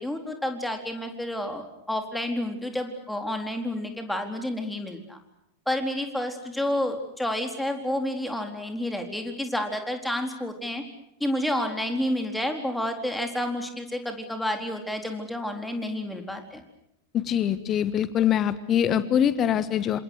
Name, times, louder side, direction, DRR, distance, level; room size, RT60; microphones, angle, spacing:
voice 1, 0.0-5.2 5.7-10.8 11.2-16.6, left 1 dB, 5° left, 4 dB, 4.1 m, -30 dB
voice 2, 17.1-20.0, left 9 dB, 30° left, 14 dB, 1.5 m, -23 dB
28.5 x 27.0 x 6.5 m, 0.81 s
figure-of-eight pair, 90°, 0 cm